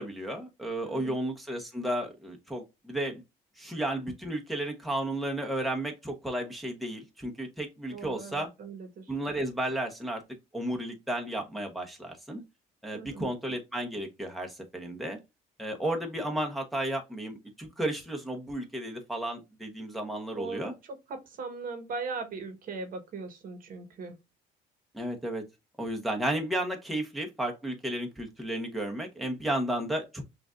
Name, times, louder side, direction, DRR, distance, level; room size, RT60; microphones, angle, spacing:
voice 1, 0.0-3.2 3.6-8.5 9.1-10.2 10.5-12.4 12.8-15.2 15.6-20.7 24.9-25.4 25.8-30.2, right 1 dB, ahead, 1.0 m, -33 dB
voice 2, 0.8-1.2 7.9-9.1 12.9-13.3 20.3-24.1, right 4 dB, 55° right, 1.2 m, -39 dB
5.8 x 2.6 x 2.4 m
cardioid pair, 110°, 17 cm